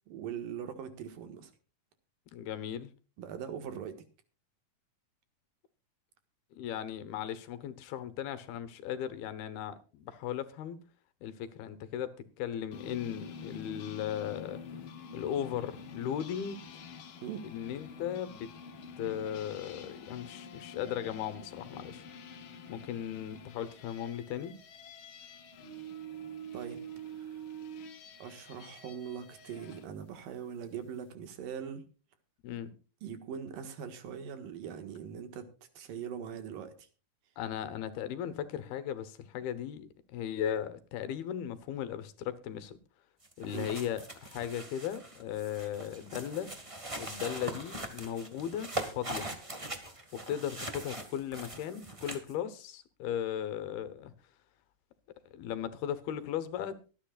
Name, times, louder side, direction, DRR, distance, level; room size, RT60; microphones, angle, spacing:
voice 1, 0.1-1.5 3.2-4.0 17.2-17.5 26.5-27.4 28.2-31.8 33.0-36.9 43.5-43.7, right 8 dB, 70° right, 3.2 m, -41 dB
voice 2, 2.3-2.9 6.5-10.8 11.2-14.6 15.1-16.6 17.4-18.5 19.0-22.0 22.7-24.5 32.4-32.7 37.4-42.8 43.4-46.5 47.0-49.3 50.1-54.1 55.3-56.8, left 9 dB, 85° left, 3.2 m, -37 dB
sound 1, 12.7-29.9, left 1 dB, 65° left, 1.2 m, -47 dB
sound 2, 43.2-52.3, right 1 dB, 50° right, 0.4 m, -41 dB
24.5 x 9.8 x 2.4 m
omnidirectional pair, 4.3 m